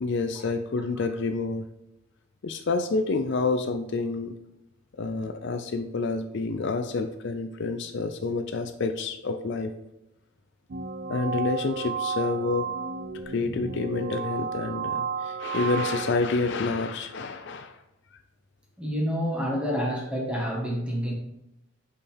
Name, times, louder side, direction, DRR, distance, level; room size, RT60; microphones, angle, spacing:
voice 1, 0.0-1.7 2.4-4.3 5.0-9.7 11.1-12.7 13.3-17.8, left 3 dB, 55° left, 6 dB, 0.5 m, -28 dB
sound 1, 10.7-16.2, right 6 dB, 45° right, 0.4 m, -32 dB
voice 2, 18.8-21.1, equal, 5° right, -3 dB, 1.5 m, -28 dB
6.4 x 5.5 x 3.5 m, 0.92 s
head